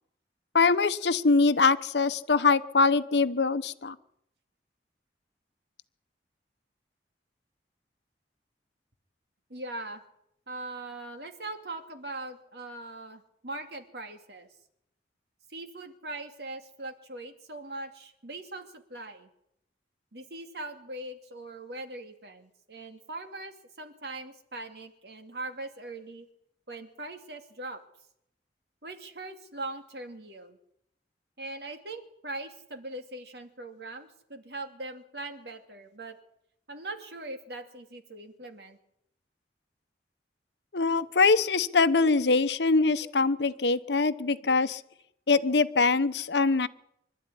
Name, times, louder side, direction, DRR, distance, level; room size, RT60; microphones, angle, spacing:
voice 1, 0.5-4.0 40.7-44.8 45.3-46.7, left 4 dB, 75° left, 13 dB, 1.0 m, -23 dB
voice 2, 9.5-10.0 10.5-14.5 15.5-19.3 20.1-26.3 26.7-27.8 28.8-30.6 31.4-36.2 36.7-38.8, right 2 dB, 65° right, 6 dB, 2.6 m, -41 dB
25.5 x 12.5 x 9.9 m, 0.78 s
head